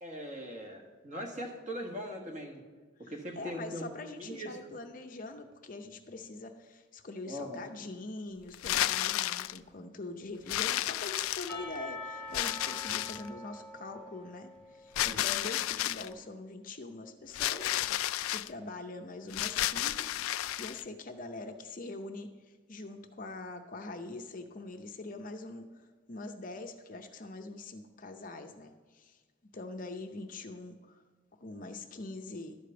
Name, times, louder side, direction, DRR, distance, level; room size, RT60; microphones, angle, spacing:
voice 1, 0.0-2.6 3.0-3.8 4.1-4.5 7.3-7.6 15.0-15.2, equal, 35° right, 2 dB, 1.5 m, -40 dB
voice 2, 3.0-20.1 20.6-29.2 29.5-31.0 31.4-32.6, left 2 dB, 40° left, 6 dB, 0.6 m, -43 dB
sound 1, 8.5-9.6 10.5-11.8 12.3-13.3 14.9-16.1 17.3-18.5 19.3-20.8, left 14 dB, 85° left, 0.3 m, -32 dB
Percussion / Church bell, 11.5-15.4, left 2 dB, 5° left, 1.2 m, -45 dB
12.0 x 5.0 x 7.7 m, 1.4 s
head